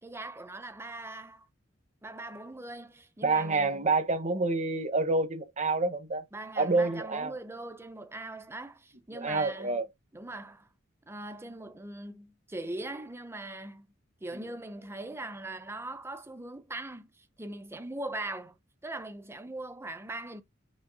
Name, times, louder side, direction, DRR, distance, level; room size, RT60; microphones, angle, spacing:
voice 1, 0.0-1.5 2.0-3.9 6.3-9.8 10.1-10.7 11.1-13.9 14.2-18.5 18.8-20.4, right 2 dB, 15° right, 0.8 m, -41 dB
voice 2, 3.2-6.2 6.6-7.3 9.1-9.9, right 3 dB, 35° right, 1.2 m, -28 dB
8.9 x 3.1 x 4.1 m
head